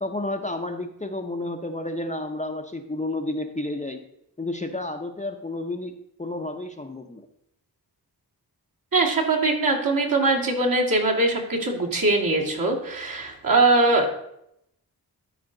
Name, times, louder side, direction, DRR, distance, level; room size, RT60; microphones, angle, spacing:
voice 1, 0.0-4.0 4.4-7.3, left 2 dB, 20° left, 5 dB, 0.7 m, -31 dB
voice 2, 8.9-14.1, right 2 dB, 55° right, -2 dB, 2.2 m, -22 dB
12.5 x 4.9 x 3.9 m, 0.78 s
cardioid pair, 55°, 41 cm